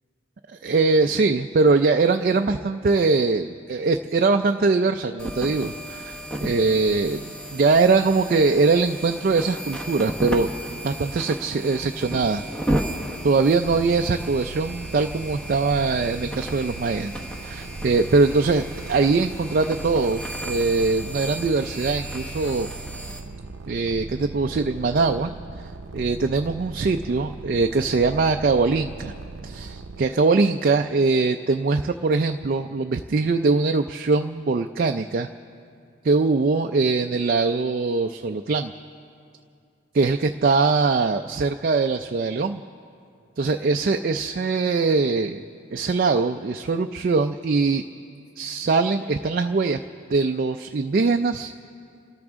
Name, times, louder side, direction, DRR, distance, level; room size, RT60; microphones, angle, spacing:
voice 1, 0.6-7.2 7.5-12.4 13.2-17.1 17.4-22.7 23.7-25.3 25.9-29.1 29.4-35.3 36.0-38.7 39.9-42.6 43.4-45.4 45.7-47.8 48.4-49.8 50.1-51.5, right 4 dB, 45° right, 6 dB, 0.4 m, -22 dB
sound 1, 5.2-23.2, right 1 dB, 5° left, 1.0 m, -34 dB
sound 2, 13.6-30.1, right 3 dB, 90° right, 0.6 m, -38 dB
28.5 x 13.5 x 3.6 m, 2.4 s
head